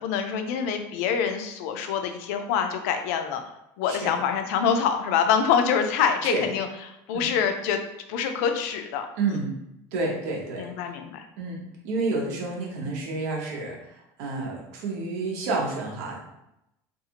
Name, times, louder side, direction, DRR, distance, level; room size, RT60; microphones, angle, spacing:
voice 1, 0.0-3.4 3.8-6.7 7.1-7.8 8.1-9.1 10.6-11.3, left 7 dB, 85° left, 6 dB, 0.4 m, -25 dB
voice 2, 9.2-9.5 9.9-10.7 11.4-16.2, right 3 dB, 90° right, -2 dB, 0.9 m, -30 dB
2.6 x 2.4 x 2.8 m, 0.84 s
cardioid pair, 160°, 8 cm